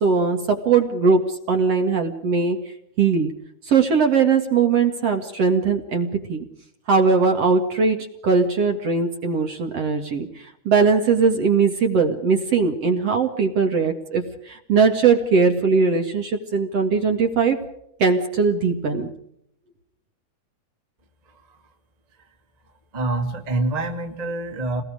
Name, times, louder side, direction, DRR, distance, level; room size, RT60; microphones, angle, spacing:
voice 1, 0.0-2.6 3.0-3.3 3.7-6.5 6.9-10.3 10.7-17.6 18.0-19.1, right 5 dB, 45° right, 4 dB, 2.5 m, -20 dB
voice 2, 22.9-24.8, right 2 dB, 15° right, 3 dB, 1.6 m, -26 dB
29.5 x 20.5 x 5.0 m, 0.73 s
omnidirectional pair, 4.4 m